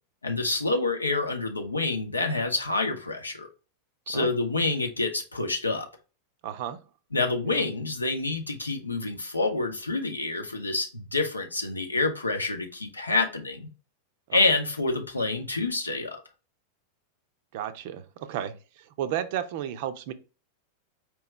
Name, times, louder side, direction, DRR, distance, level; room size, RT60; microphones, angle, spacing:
voice 1, 0.2-3.5 4.1-5.9 7.1-13.7 14.3-16.2, left 3 dB, 80° left, 0.7 m, -27 dB
voice 2, 6.4-6.8 7.5-7.6 14.3-14.4 17.5-18.5 19.0-20.1, right 10 dB, 50° right, 0.5 m, -32 dB
4.7 x 3.0 x 3.1 m
figure-of-eight pair, 90°, 0 cm